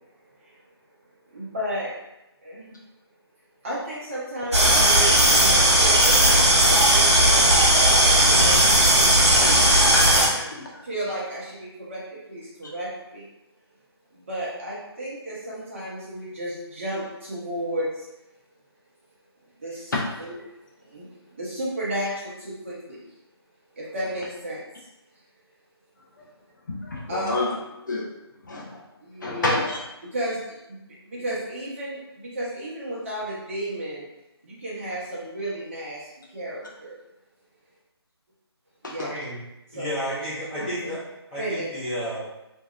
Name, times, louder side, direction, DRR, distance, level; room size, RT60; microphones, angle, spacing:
voice 1, 1.3-1.9 2.4-2.7 3.6-7.7 8.2-9.2 10.8-12.0 12.3-13.3 14.1-18.1 19.6-19.9 20.2-20.4 20.8-23.0 23.8-24.6 27.1-27.6 29.0-29.7 30.0-34.0 34.4-37.0 38.8-39.1 39.7-40.0 40.8-40.9 41.4-41.7, right 1 dB, 30° right, -6 dB, 0.7 m, -33 dB
sound 1, 4.5-10.3, right 1 dB, 90° right, 0.9 m, -17 dB
voice 2, 9.4-10.8 26.7-27.5 27.9-28.1 28.4-28.8 29.2-29.8 38.8-38.9, left 2 dB, 45° left, -2 dB, 0.5 m, -29 dB
voice 3, 39.0-39.4 39.7-41.0 41.3-42.2, equal, 20° left, -12 dB, 1.1 m, -31 dB
2.8 x 2.7 x 2.4 m, 0.93 s
figure-of-eight pair, 165°, 14 cm